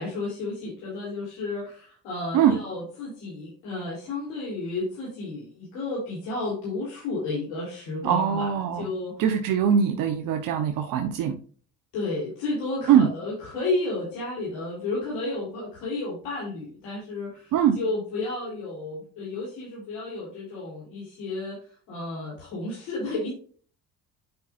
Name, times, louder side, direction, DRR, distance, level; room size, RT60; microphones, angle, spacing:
voice 1, 0.0-8.5 8.8-9.2 11.9-21.6 21.9-23.3, left 2 dB, 85° left, -6 dB, 3.9 m, -32 dB
voice 2, 8.0-8.9 9.2-11.3 12.9-13.1 17.5-17.8, right 8 dB, 70° right, 4 dB, 1.1 m, -22 dB
9.3 x 5.7 x 2.6 m, 0.44 s
supercardioid pair, 80°, 34 cm